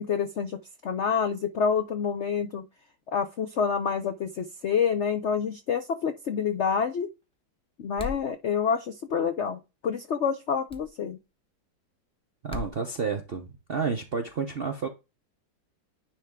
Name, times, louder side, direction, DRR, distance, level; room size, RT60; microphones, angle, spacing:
voice 1, 0.0-2.6 3.1-7.1 7.8-11.2, left 6 dB, 70° left, 0.6 m, -28 dB
sound 1, 8.0-8.3 10.7-10.9 12.5-12.7, left 3 dB, 5° left, 0.6 m, -36 dB
voice 2, 12.4-14.9, right 5 dB, 60° right, 0.6 m, -30 dB
10.0 x 3.4 x 3.6 m
omnidirectional pair, 2.0 m